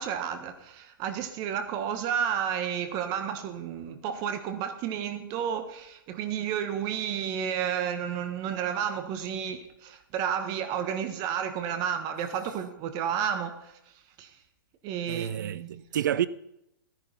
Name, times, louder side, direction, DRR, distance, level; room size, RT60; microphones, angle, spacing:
voice 1, 0.0-13.8 14.2-14.3 14.8-15.8, right 8 dB, 35° right, 1.5 m, -31 dB
voice 2, 15.1-16.3, right 10 dB, 60° right, 0.5 m, -29 dB
16.0 x 10.5 x 4.4 m
figure-of-eight pair, 115°, 12 cm